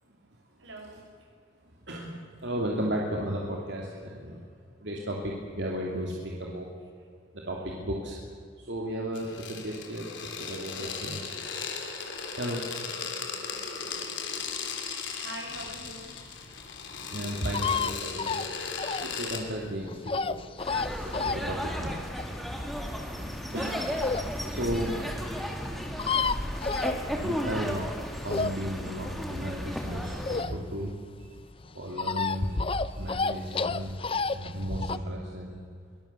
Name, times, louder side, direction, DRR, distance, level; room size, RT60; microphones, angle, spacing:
voice 1, 0.6-1.1 10.7-11.1 15.1-16.2 21.1-21.6 24.7-25.5, right 1 dB, 85° right, 2 dB, 5.7 m, -45 dB
voice 2, 1.9-4.4 4.8-6.7 7.3-8.2 8.6-11.2 12.4-12.6 17.1-18.5 19.0-22.1 23.5-23.9 24.5-24.9 27.1-27.9 28.2-30.9 31.2-31.3 31.7-35.6, equal, 65° right, -2 dB, 2.8 m, -34 dB
sound 1, 9.1-19.4, left 5 dB, 75° left, 3.2 m, -37 dB
sound 2, 15.7-24.4 24.8-24.9 25.1-25.2 25.4-25.5 25.7-27.5 27.9-30.9 31.2-35.0, left 4 dB, 30° left, 0.6 m, -31 dB
sound 3, 20.6-30.4, equal, ahead, 2.4 m, -34 dB
23.5 x 20.0 x 7.0 m, 2.2 s
head